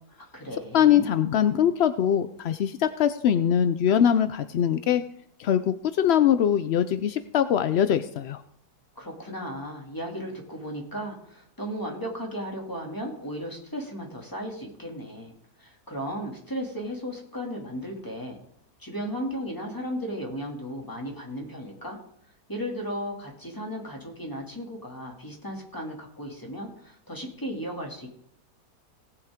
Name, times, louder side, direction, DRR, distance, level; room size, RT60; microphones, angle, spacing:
voice 1, 0.2-1.1 9.0-15.3 15.6-18.4 18.8-22.0 22.5-28.1, equal, 10° left, 0 dB, 2.3 m, -35 dB
voice 2, 0.7-5.0 5.4-8.4, left 9 dB, 75° left, 11 dB, 0.6 m, -22 dB
18.0 x 8.2 x 3.6 m, 0.72 s
omnidirectional pair, 1.7 m